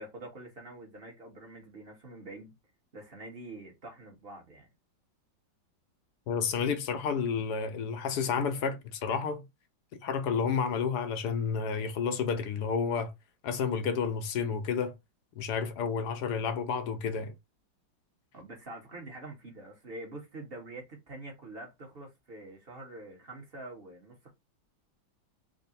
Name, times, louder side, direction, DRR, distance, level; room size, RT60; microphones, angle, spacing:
voice 1, 0.0-2.5 2.9-4.7 18.3-24.3, right 2 dB, 35° right, 1.0 m, -45 dB
voice 2, 6.3-9.4 10.0-13.1 13.4-14.9 15.4-17.3, left 6 dB, 70° left, 1.0 m, -30 dB
3.6 x 2.0 x 4.1 m
omnidirectional pair, 2.1 m